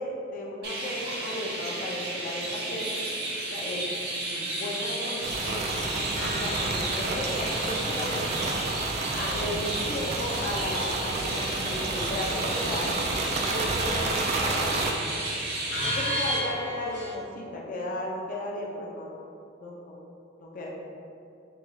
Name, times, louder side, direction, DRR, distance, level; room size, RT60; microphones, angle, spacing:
voice 1, 0.0-2.9 3.5-3.9 4.2-5.8 6.2-8.5 9.1-15.0 15.8-19.3 19.6-20.0 20.4-20.7, left 1 dB, 45° left, -3 dB, 0.5 m, -35 dB
Chirp tweet, 0.6-16.4, right 2 dB, 55° right, 1.1 m, -32 dB
sound 1, 5.2-14.9, right 3 dB, 35° right, 0.3 m, -31 dB
sound 2, 5.8-17.1, equal, 60° left, 1.2 m, -38 dB
6.2 x 2.3 x 3.2 m, 2.6 s
head